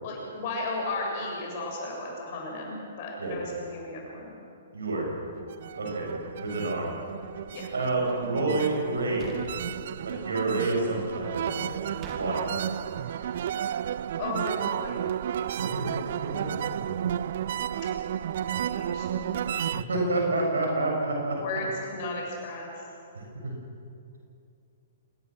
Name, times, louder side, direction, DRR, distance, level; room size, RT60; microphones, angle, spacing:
voice 1, 0.0-4.3 7.5-7.7 13.0-13.3 14.2-15.1 18.5-19.7 21.3-22.8, left 2 dB, 40° left, -1 dB, 7.5 m, -35 dB
voice 2, 4.7-5.1 5.8-6.1 6.4-6.9 7.7-9.4 10.0-11.7 12.1-12.5 16.2-16.4 19.9-21.4 23.1-23.5, right 2 dB, 65° right, 0 dB, 7.6 m, -28 dB
sound 1, 5.4-19.8, right 10 dB, 50° right, 0.5 m, -32 dB
sound 2, 9.2-9.7 12.0-12.2, right 4 dB, 25° right, 2.9 m, -43 dB
26.5 x 21.0 x 6.5 m, 2.5 s
figure-of-eight pair, 115°, 0 cm